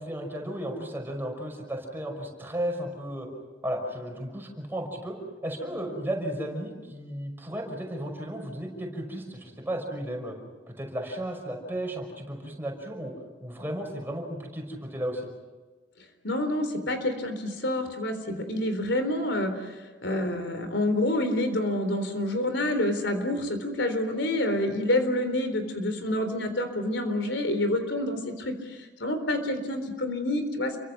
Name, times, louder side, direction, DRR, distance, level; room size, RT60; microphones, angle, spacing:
voice 1, 0.0-3.3 3.6-5.2 5.4-10.3 10.7-13.1 13.4-15.3, right 1 dB, 10° right, 1 dB, 5.7 m, -34 dB
voice 2, 16.2-19.7 20.0-30.8, left 1 dB, 80° left, 8 dB, 3.8 m, -28 dB
29.5 x 24.0 x 6.1 m, 1.3 s
head